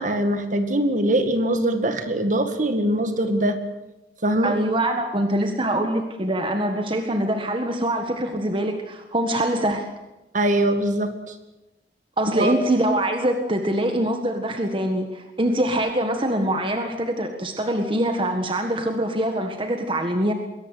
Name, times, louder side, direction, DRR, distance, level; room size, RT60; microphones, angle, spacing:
voice 1, 0.0-3.6 4.2-4.5 10.3-11.3 12.4-12.6, right 1 dB, 45° right, 8 dB, 2.0 m, -22 dB
voice 2, 4.4-9.9 12.2-20.3, right 1 dB, 30° right, 5 dB, 1.7 m, -24 dB
22.0 x 18.0 x 8.1 m, 1.0 s
head